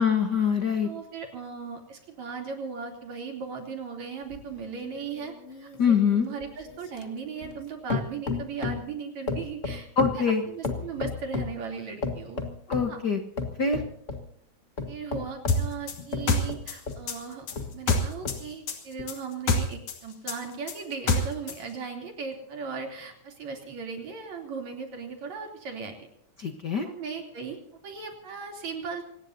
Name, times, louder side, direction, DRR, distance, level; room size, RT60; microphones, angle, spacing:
voice 1, 0.0-0.9 5.8-6.3 10.0-10.4 12.7-13.2 13.6-13.8 26.4-26.9, left 6 dB, 50° left, 5 dB, 1.4 m, -24 dB
voice 2, 0.8-9.9 10.1-12.4 12.9-13.0 14.9-17.5 17.7-26.1 26.8-29.0, right 5 dB, 70° right, 3 dB, 4.5 m, -37 dB
sound 1, 4.3-7.6 7.9-8.9 9.3-11.6 12.0-12.9 13.4-14.3 14.8-17.1 17.5-18.5 19.0-19.1, left 4 dB, 35° left, 1.5 m, -34 dB
sound 2, 15.5-18.4 18.7-21.6, left 2 dB, 80° left, 3.7 m, -26 dB
26.0 x 19.0 x 2.8 m, 0.72 s
omnidirectional pair, 3.3 m